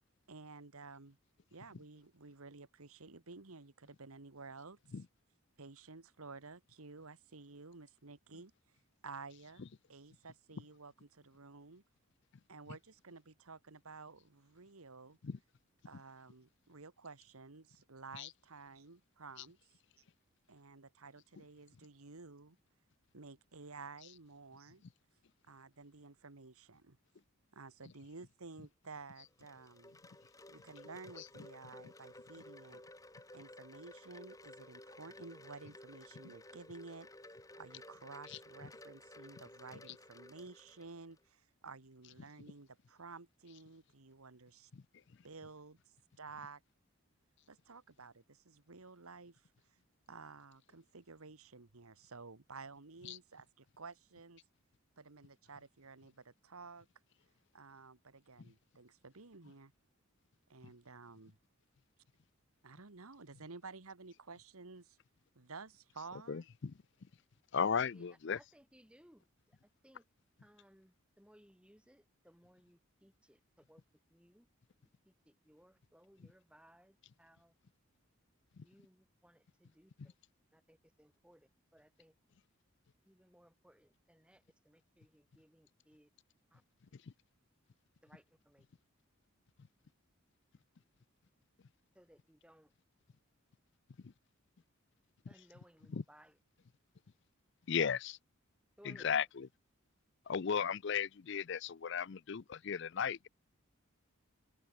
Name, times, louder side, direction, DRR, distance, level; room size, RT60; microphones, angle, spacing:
voice 1, 0.3-1.2 1.5-4.8 5.6-8.5 9.0-11.8 12.5-15.2 15.8-19.7 20.5-22.6 23.1-24.8 25.5-27.0 27.5-29.9 30.5-32.8 33.3-37.1 37.5-44.7 45.2-45.8 46.2-46.6 47.5-49.5 50.1-54.4 55.0-56.9 57.5-59.7 60.5-61.4 62.6-65.0 65.3-66.5, right 4 dB, 80° right, 1.5 m, -53 dB
Wind chime, 29.0-41.2, left 1 dB, 15° left, 3.1 m, -55 dB
voice 2, 66.3-66.7 67.5-68.4 78.6-78.7 94.0-94.1 95.9-96.0 97.7-98.2 98.9-99.5 100.3-103.3, left 7 dB, 55° left, 0.5 m, -36 dB
voice 3, 67.7-70.0 70.4-73.8 74.1-74.5 74.8-77.6 78.6-80.1 80.5-82.1 83.0-86.1 86.5-86.6 88.0-88.7 91.9-92.7 95.3-96.4 98.8-99.3, equal, 5° right, 3.3 m, -65 dB
head